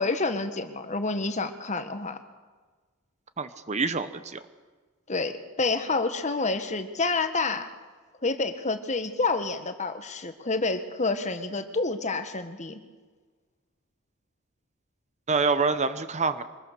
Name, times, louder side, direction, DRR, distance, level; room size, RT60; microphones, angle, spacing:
voice 1, 0.0-2.2 5.1-7.7 8.2-12.8, left 3 dB, 35° left, 9 dB, 1.5 m, -28 dB
voice 2, 3.4-4.4 15.3-16.4, right 4 dB, 30° right, 11 dB, 0.9 m, -26 dB
24.5 x 20.5 x 6.8 m, 1.4 s
head